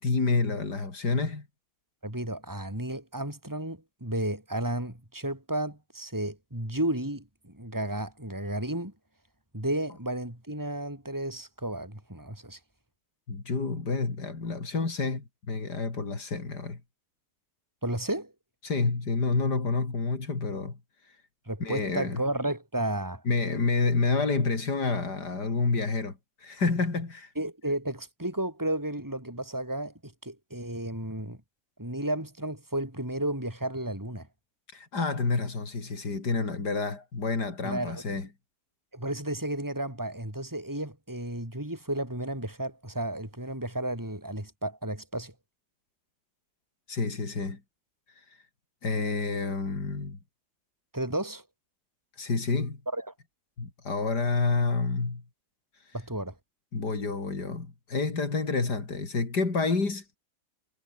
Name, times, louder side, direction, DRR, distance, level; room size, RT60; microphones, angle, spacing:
voice 1, 0.0-1.5 13.3-16.8 18.6-20.8 21.6-22.2 23.2-27.3 34.7-38.3 46.9-47.6 48.8-50.2 52.2-52.8 53.6-55.2 56.7-60.0, left 3 dB, 85° left, 4.4 m, -29 dB
voice 2, 2.0-8.9 9.5-12.6 17.8-18.3 21.5-23.2 27.4-31.4 31.8-34.3 37.6-38.0 38.9-45.3 50.9-51.4 52.9-53.1 55.9-56.3, right 1 dB, 10° right, 5.4 m, -33 dB
omnidirectional pair, 1.7 m